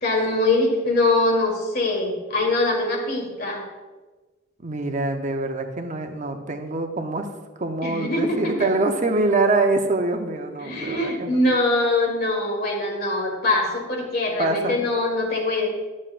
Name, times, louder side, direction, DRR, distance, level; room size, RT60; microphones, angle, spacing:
voice 1, 0.0-3.6 7.8-8.5 10.6-15.7, left 2 dB, 50° left, 1 dB, 1.7 m, -23 dB
voice 2, 4.6-7.3 7.6-11.4 14.4-14.8, right 2 dB, 40° right, 5 dB, 0.7 m, -24 dB
12.0 x 7.4 x 2.5 m, 1.3 s
head